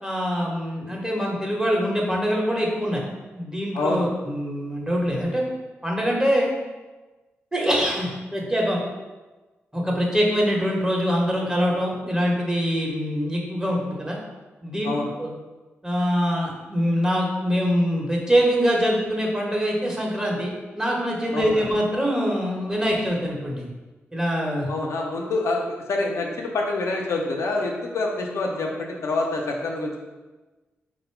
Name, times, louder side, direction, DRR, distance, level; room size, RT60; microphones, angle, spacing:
voice 1, 0.0-3.0 3.3-5.4 5.8-6.5 7.5-8.8 9.7-14.2 14.6-14.9 15.2-15.3 15.8-23.7 24.1-24.7, equal, 15° right, -2 dB, 1.1 m, -24 dB
voice 2, 3.7-4.1 14.8-15.1 21.3-21.7 24.7-30.0, left 2 dB, 80° left, 0 dB, 0.6 m, -26 dB
4.0 x 2.2 x 4.5 m, 1.2 s
cardioid pair, 55°, 5 cm